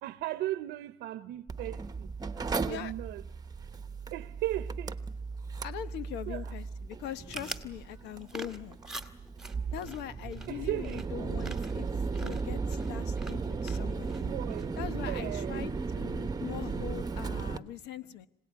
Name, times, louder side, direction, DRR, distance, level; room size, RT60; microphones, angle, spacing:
voice 1, 0.0-2.1 2.6-3.2 4.1-5.0 6.3-6.4 10.5-11.4 14.3-15.6, right 15 dB, 80° right, 0.9 m, -37 dB
Mechanical fan, 1.5-17.6, right 4 dB, 25° right, 1.1 m, -36 dB
voice 2, 2.5-2.9 5.6-8.8 9.7-14.3 14.8-18.3, left 10 dB, 85° left, 1.2 m, -42 dB
sound 1, 7.0-14.9, right 1 dB, 5° right, 1.9 m, -47 dB
26.0 x 18.0 x 9.5 m
cardioid pair, 110°, 17 cm